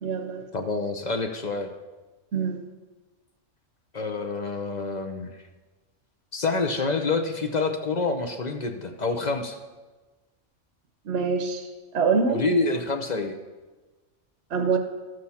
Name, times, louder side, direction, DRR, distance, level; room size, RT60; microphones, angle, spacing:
voice 1, 0.0-0.4 2.3-2.6 11.0-12.4 14.5-14.8, right 5 dB, 65° right, 5 dB, 1.1 m, -25 dB
voice 2, 0.5-1.7 3.9-5.3 6.3-9.6 12.3-13.3, left 3 dB, 45° left, 6 dB, 0.7 m, -27 dB
13.0 x 7.7 x 4.3 m, 1.3 s
omnidirectional pair, 1.3 m